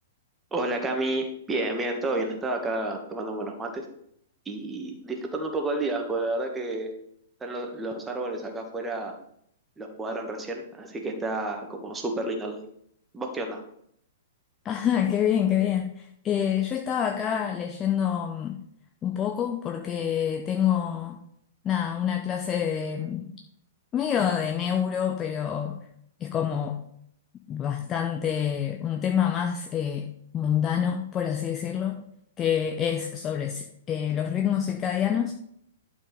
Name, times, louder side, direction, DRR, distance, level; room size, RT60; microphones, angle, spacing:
voice 1, 0.5-3.8 4.4-6.9 7.4-9.2 9.8-12.6 13.1-13.6, right 2 dB, 10° right, 2 dB, 1.6 m, -30 dB
voice 2, 14.6-18.6 19.0-21.2 21.6-23.3 23.9-25.8 26.2-26.8 27.5-30.1 30.3-32.0 32.4-35.3, left 9 dB, 20° left, 3 dB, 0.7 m, -27 dB
11.5 x 4.7 x 5.1 m, 0.70 s
figure-of-eight pair, 110°, 0 cm